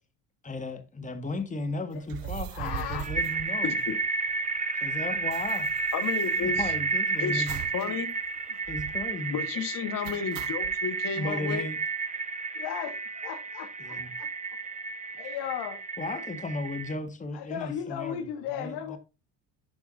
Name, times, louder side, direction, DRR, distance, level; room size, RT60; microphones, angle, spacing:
voice 1, 0.4-3.8 4.8-5.7 6.4-8.0 8.7-9.4 11.1-11.8 13.8-14.1 16.0-18.2 18.5-19.0, left 2 dB, 20° left, 1.7 m, -35 dB
voice 2, 1.9-3.1 8.5-8.6 12.5-14.3 15.2-15.8 16.1-16.2 17.3-19.0, left 9 dB, 75° left, 1.4 m, -36 dB
sound 1, 2.0-4.3 4.6-4.7 4.9-7.0 7.5-7.9 8.2-8.3 8.6-9.1 10.0-10.8, right 13 dB, 55° right, 0.8 m, -40 dB
sound 2, 2.6-16.9, right 4 dB, 20° right, 0.9 m, -31 dB
voice 3, 3.6-4.0 5.9-6.6 7.2-8.1 9.3-11.6, left 7 dB, 55° left, 1.7 m, -32 dB
10.5 x 7.1 x 2.7 m
supercardioid pair, 85°, 40 cm